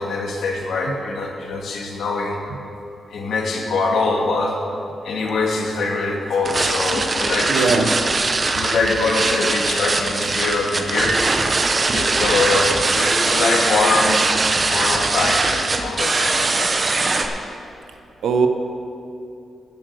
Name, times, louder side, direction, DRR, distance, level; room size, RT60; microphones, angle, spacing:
voice 1, 0.0-2.4 3.1-4.6 5.0-8.0 8.5-11.2 11.9-14.3 14.7-16.8, left 3 dB, 70° left, 0 dB, 2.0 m, -23 dB
sound 1, 6.4-17.2, right 3 dB, 30° right, 0.8 m, -21 dB
voice 2, 7.5-7.9 18.2-18.5, right 5 dB, 80° right, 5 dB, 0.9 m, -19 dB
14.5 x 7.7 x 6.6 m, 2.7 s
wide cardioid pair, 160°, 0 cm